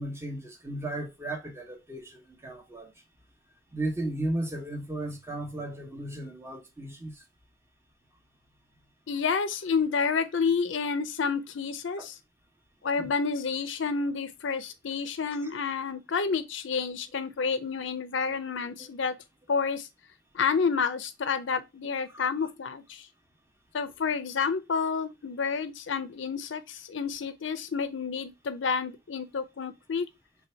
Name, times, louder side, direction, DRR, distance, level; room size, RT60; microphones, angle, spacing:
voice 1, 0.0-2.9 3.7-7.1 12.0-12.1 13.0-13.1 18.2-18.4 18.8-18.9 22.1-22.3, right 1 dB, 15° right, 1.0 m, -35 dB
voice 2, 9.1-12.2 12.8-19.2 19.5-19.9 20.3-23.1 23.7-30.1, left 5 dB, 65° left, 0.5 m, -29 dB
3.4 x 2.7 x 4.3 m
head